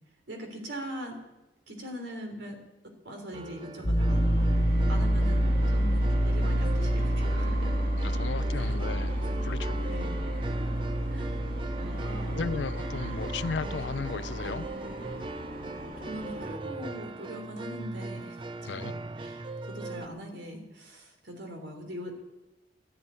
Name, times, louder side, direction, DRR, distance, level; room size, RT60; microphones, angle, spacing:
voice 1, 0.3-1.2 1.7-2.6 3.1-4.6 4.9-7.7 8.6-8.7 9.9-10.2 11.1-11.4 11.8-12.4 16.0-18.9 19.2-22.2, equal, 80° right, 3.4 m, -41 dB
sound 1, 3.3-20.1, right 2 dB, 30° right, 0.6 m, -39 dB
Piano, 3.8-14.7, equal, 30° left, 1.3 m, -28 dB
sound 2, 4.1-16.6, right 1 dB, 55° right, 2.2 m, -40 dB
voice 2, 8.0-10.1 12.3-14.7 18.7-19.0, left 5 dB, 80° left, 0.5 m, -35 dB
12.5 x 11.0 x 9.6 m
head